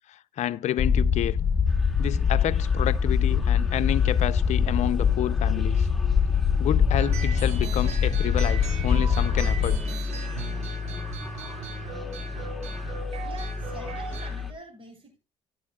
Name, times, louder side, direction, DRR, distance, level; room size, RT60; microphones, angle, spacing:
voice 1, 0.1-1.4 2.0-5.9 6.6-9.8, left 12 dB, 65° left, 0.6 m, -29 dB
sound 1, 0.8-9.8, left 7 dB, 35° left, 1.4 m, -23 dB
sound 2, 1.7-14.5, left 4 dB, ahead, 2.3 m, -34 dB
sound 3, 7.0-14.3, right 4 dB, 60° right, 7.0 m, -37 dB
voice 2, 12.2-12.5 13.2-15.2, right 1 dB, 45° right, 7.0 m, -45 dB
14.5 x 10.5 x 2.4 m
supercardioid pair, 75°, 13 cm